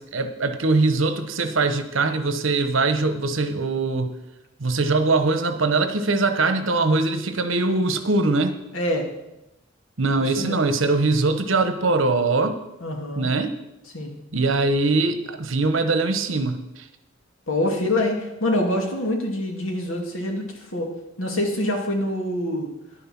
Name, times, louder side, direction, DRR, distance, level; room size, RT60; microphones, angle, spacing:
voice 1, 0.1-4.1 4.6-8.6 10.0-12.6 13.2-13.5 14.3-16.6, right 3 dB, 75° right, 9 dB, 1.1 m, -22 dB
voice 2, 8.7-9.1 10.2-10.6 12.8-13.3 13.9-14.2 17.5-20.4 20.7-20.9 21.2-22.7, left 1 dB, 80° left, 2 dB, 2.4 m, -25 dB
11.0 x 9.4 x 6.0 m, 0.91 s
head